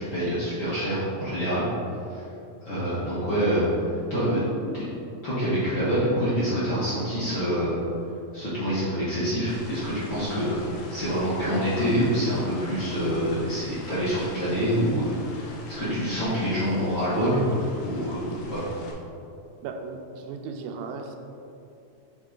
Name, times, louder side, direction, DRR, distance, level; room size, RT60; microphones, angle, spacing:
voice 1, 0.0-1.6 2.1-2.2 2.6-3.6 4.1-4.4 4.7-4.8 5.2-7.8 8.3-10.6 10.9-17.4 17.8-18.2 18.5-18.6, equal, 55° left, -11 dB, 1.5 m, -26 dB
sound 1, 9.5-18.9, left 2 dB, 75° left, 2.3 m, -44 dB
voice 2, 19.6-21.2, right 4 dB, 90° right, 4 dB, 2.4 m, -36 dB
7.9 x 3.9 x 3.7 m, 2.6 s
omnidirectional pair, 4.1 m